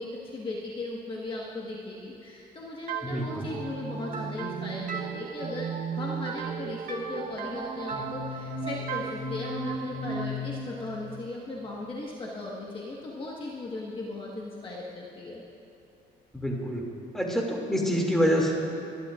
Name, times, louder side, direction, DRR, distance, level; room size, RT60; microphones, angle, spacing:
voice 1, 0.0-15.4, left 2 dB, 30° left, -4 dB, 1.6 m, -37 dB
sound 1, 2.9-12.4, right 3 dB, 50° right, 1.2 m, -35 dB
voice 2, 3.0-3.5 16.3-16.8 17.1-18.5, equal, ahead, -2 dB, 2.5 m, -26 dB
24.0 x 11.0 x 2.5 m, 2.9 s
cardioid pair, 110°, 17 cm